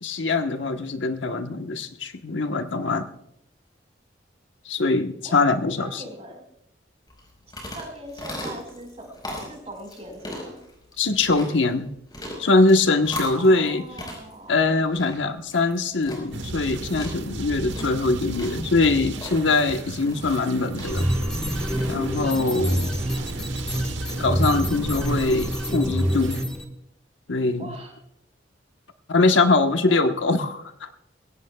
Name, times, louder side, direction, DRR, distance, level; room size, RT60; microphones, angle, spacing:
voice 1, 0.0-3.1 4.7-6.0 11.0-11.9 12.4-13.8 14.5-21.1 21.9-22.9 24.2-26.4 27.3-27.7 29.1-30.9, left 3 dB, 90° left, 6 dB, 1.2 m, -22 dB
voice 2, 5.8-6.4 7.4-10.6 13.3-14.8 22.4-23.4 27.6-27.9 29.3-30.1, right 1 dB, 35° right, 2 dB, 4.6 m, -41 dB
sound 1, 7.1-24.2, left 1 dB, 20° left, 4.8 m, -40 dB
sound 2, 16.3-26.5, right 2 dB, 80° right, 1.2 m, -35 dB
sound 3, 20.8-26.7, equal, 5° left, 1.4 m, -26 dB
21.5 x 17.5 x 2.3 m, 0.77 s
head